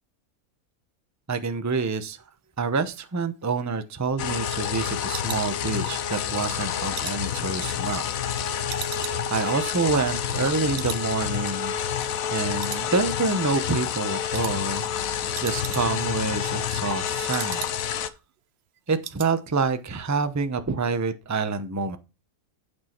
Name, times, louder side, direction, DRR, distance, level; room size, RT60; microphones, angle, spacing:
voice 1, 1.3-2.2 2.6-8.0 9.3-11.7 12.3-14.8 15.4-17.6 18.9-22.0, right 4 dB, 15° right, 10 dB, 0.7 m, -27 dB
sound 1, 3.4-6.2 6.5-8.3 8.7-10.5 10.7-11.1 11.4-11.5 11.9-12.3 12.6-13.4 13.7-13.9 14.3-14.6 14.9-15.0 15.2-16.2 16.5-18.1 18.4-18.5 18.7-19.4 19.6-19.9 20.2-20.3, right 10 dB, 60° right, 0.8 m, -40 dB
sound 2, 4.2-18.1, left 9 dB, 70° left, 1.2 m, -29 dB
9.1 x 6.4 x 4.4 m, 0.28 s
omnidirectional pair, 1.5 m